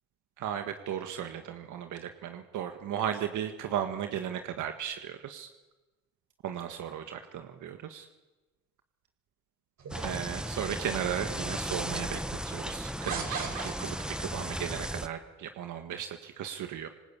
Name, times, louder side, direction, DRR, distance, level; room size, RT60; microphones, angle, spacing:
voice 1, 0.4-5.5 6.4-8.1 10.0-16.9, right 9 dB, 80° right, 6 dB, 1.7 m, -36 dB
sound 1, 9.8-10.7 11.5-11.6 13.0-14.3, right 5 dB, 65° right, 5.9 m, -38 dB
sound 2, 9.9-15.1, equal, 5° right, 1.4 m, -36 dB
26.5 x 20.5 x 8.5 m, 1.1 s
cardioid pair, 90°, 30 cm